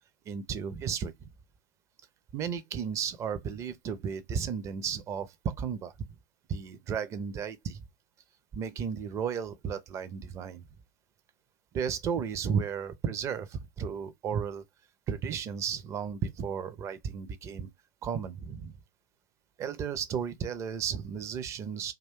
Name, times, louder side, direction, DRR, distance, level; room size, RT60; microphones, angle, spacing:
voice 1, 0.3-1.3 2.3-5.9 6.5-7.9 8.5-10.7 11.7-14.6 15.1-17.7 18.0-18.8 19.6-21.9, right 7 dB, 25° right, 0.5 m, -34 dB
2.5 x 2.2 x 3.5 m
figure-of-eight pair, 95°, 11 cm